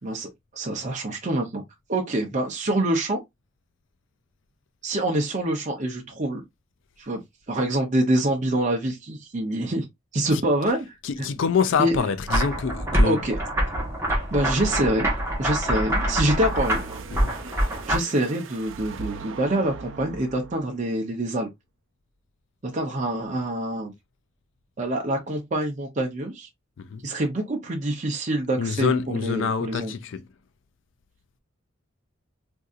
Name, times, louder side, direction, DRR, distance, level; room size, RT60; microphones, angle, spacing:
voice 1, 0.0-1.6 1.9-3.2 4.8-6.4 7.0-7.2 7.5-9.8 10.1-10.9 11.8-12.0 13.0-13.4 14.3-15.1 15.4-16.8 17.9-21.5 22.6-23.9 24.8-26.5 27.0-29.9, right 1 dB, 40° right, 0.6 m, -26 dB
voice 2, 11.0-13.2 17.1-17.4 26.8-27.1 28.6-30.3, left 6 dB, 70° left, 0.4 m, -26 dB
sound 1, 12.3-18.0, equal, 15° right, 1.1 m, -25 dB
sound 2, 15.8-20.9, right 5 dB, 85° right, 0.5 m, -39 dB
3.7 x 2.7 x 2.4 m
head